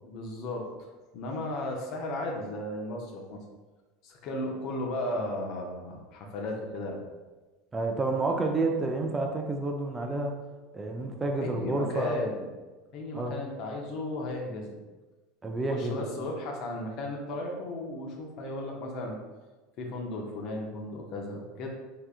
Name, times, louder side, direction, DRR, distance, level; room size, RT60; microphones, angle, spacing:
voice 1, 0.0-0.7 1.1-3.4 4.0-7.0 11.4-12.5 12.9-14.8 15.7-19.2 19.8-21.7, left 1 dB, 55° left, 1 dB, 0.7 m, -35 dB
voice 2, 7.7-10.4 10.7-12.2 13.1-13.4 15.4-16.1, right 2 dB, 20° right, 2 dB, 0.5 m, -29 dB
3.4 x 2.8 x 2.4 m, 1.2 s
hypercardioid pair, 90°, 0 cm